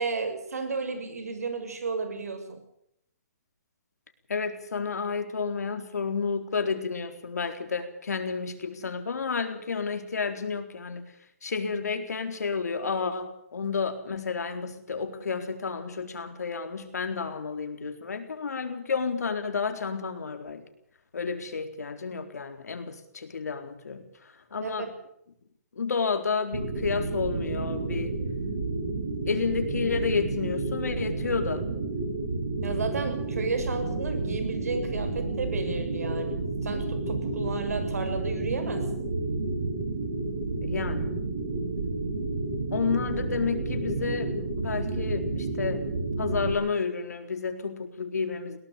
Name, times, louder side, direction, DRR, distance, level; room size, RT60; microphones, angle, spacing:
voice 1, 0.0-2.6 24.6-24.9 32.6-39.1, right 4 dB, 70° right, 8 dB, 6.9 m, -33 dB
voice 2, 4.3-11.0 11.4-20.6 21.1-24.1 24.5-24.9 25.8-28.1 29.3-31.6 40.6-41.1 42.7-45.9 46.2-48.6, left 5 dB, 90° left, 6 dB, 4.1 m, -31 dB
sound 1, 26.5-46.5, right 3 dB, 40° right, 4.8 m, -31 dB
21.5 x 18.0 x 7.0 m, 0.72 s
hypercardioid pair, 180°, 9 cm